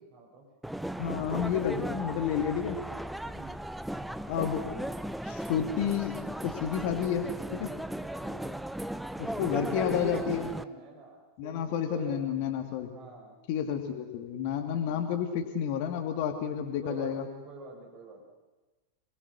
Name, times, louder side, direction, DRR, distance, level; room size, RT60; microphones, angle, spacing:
voice 1, 0.1-0.5 3.2-3.6 7.9-8.5 9.5-12.3 12.9-13.3 14.7-15.1 16.8-18.2, right 3 dB, 40° right, 0 dB, 6.2 m, -45 dB
sound 1, 0.6-10.6, right 1 dB, ahead, 0.7 m, -36 dB
voice 2, 1.0-2.8 4.3-4.7 5.2-6.2 6.4-7.3 7.5-7.7 9.2-10.5 11.4-12.9 13.5-17.3, left 8 dB, 45° left, 5 dB, 2.6 m, -30 dB
27.5 x 20.5 x 6.5 m, 1.2 s
figure-of-eight pair, 90°, 0 cm